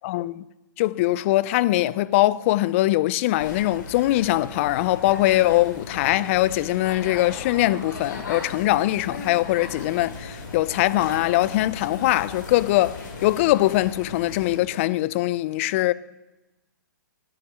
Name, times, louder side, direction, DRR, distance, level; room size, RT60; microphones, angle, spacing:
voice 1, 0.0-0.4 0.8-15.9, left 16 dB, 40° left, 0.6 m, -22 dB
sound 1, 3.4-14.6, left 3 dB, 65° left, 6.2 m, -37 dB
17.5 x 12.5 x 6.2 m
hypercardioid pair, 130°, 11 cm